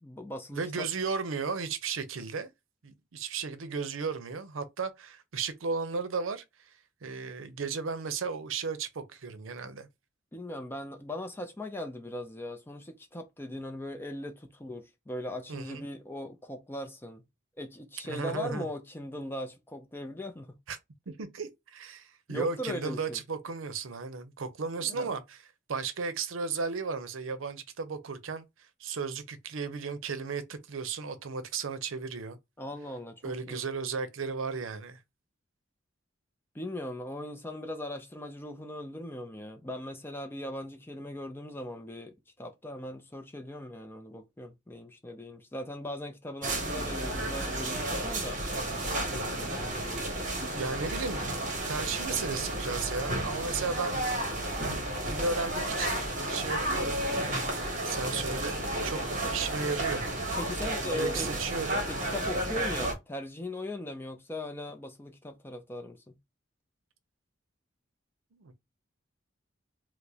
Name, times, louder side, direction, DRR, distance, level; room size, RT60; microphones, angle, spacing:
voice 1, 0.0-0.9 10.3-17.2 17.6-20.6 22.3-23.2 24.8-25.2 32.6-33.6 36.5-48.4 49.5-49.8 60.4-61.3 61.9-66.2, left 1 dB, 10° left, 0.4 m, -39 dB
voice 2, 0.5-2.5 2.8-6.4 7.0-9.9 15.5-15.8 18.0-18.7 20.7-20.8 21.1-25.4 25.7-28.4 28.8-32.4 33.2-35.0 49.1-49.4 49.8-49.9 50.5-51.3 51.7-53.9 55.1-56.0 56.3-57.4 57.8-58.6 58.8-60.1 61.0-61.9 68.3-68.5, right 5 dB, 90° right, 0.6 m, -35 dB
sound 1, 46.4-62.9, right 1 dB, 40° right, 0.9 m, -32 dB
4.6 x 2.0 x 2.7 m
head